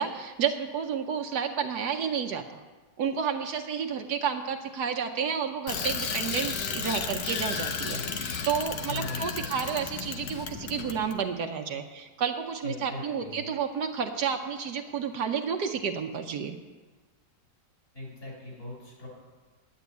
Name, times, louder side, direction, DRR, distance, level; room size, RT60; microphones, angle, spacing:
voice 1, 0.0-2.4 3.0-16.6, right 7 dB, 70° right, 5 dB, 1.2 m, -31 dB
Bicycle, 5.7-11.2, left 6 dB, 70° left, 1.6 m, -33 dB
voice 2, 7.9-8.3 8.9-9.5 12.6-13.4 17.9-19.1, left 2 dB, 45° left, -3 dB, 5.8 m, -40 dB
10.5 x 8.4 x 9.3 m, 1.3 s
omnidirectional pair, 2.0 m